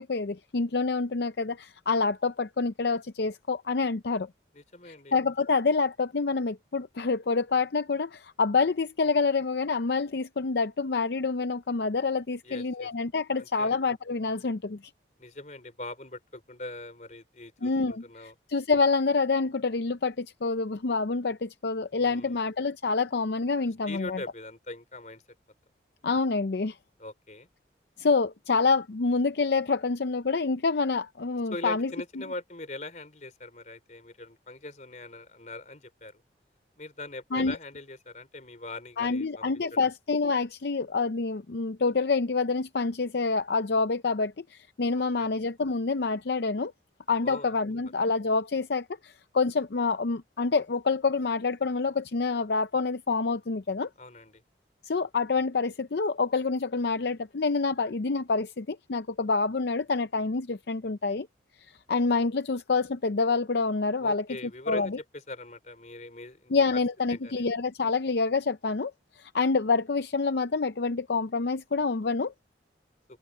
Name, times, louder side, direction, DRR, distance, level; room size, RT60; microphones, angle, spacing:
voice 1, 0.0-4.3 4.8-14.8 17.6-24.2 26.0-26.8 28.0-32.2 37.3-37.6 39.0-46.7 47.1-53.9 54.8-61.3 61.9-64.4 64.7-65.0 66.5-72.3, left 4 dB, 65° left, 0.6 m, -27 dB
voice 2, 4.5-5.1 12.4-12.9 13.4-13.8 15.2-18.3 21.9-22.4 23.9-25.2 27.0-27.5 31.5-36.2 36.8-39.8 45.2-45.3 47.2-47.5 54.0-54.3 64.0-66.8 67.1-67.5, left 2 dB, 40° left, 4.0 m, -41 dB
head